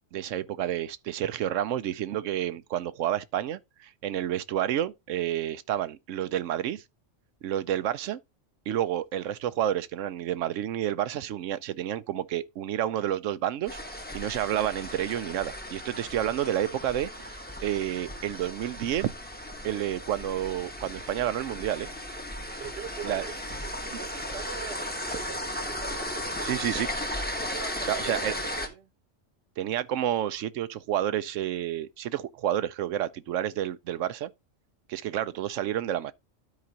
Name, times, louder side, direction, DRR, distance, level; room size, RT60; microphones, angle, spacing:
voice 1, 0.1-6.8 7.4-8.2 8.7-13.8 14.1-19.1 19.6-21.9 23.0-23.3 23.9-24.0 26.4-26.9 27.9-28.3 29.6-34.3 34.9-36.1, right 11 dB, 80° right, 1.0 m, -30 dB
sound 1, 13.7-28.7, left 1 dB, 10° left, 1.0 m, -36 dB
voice 2, 22.6-24.8 25.1-26.6 27.5-28.9, right 6 dB, 55° right, 1.1 m, -42 dB
12.5 x 4.9 x 2.8 m
omnidirectional pair, 1.3 m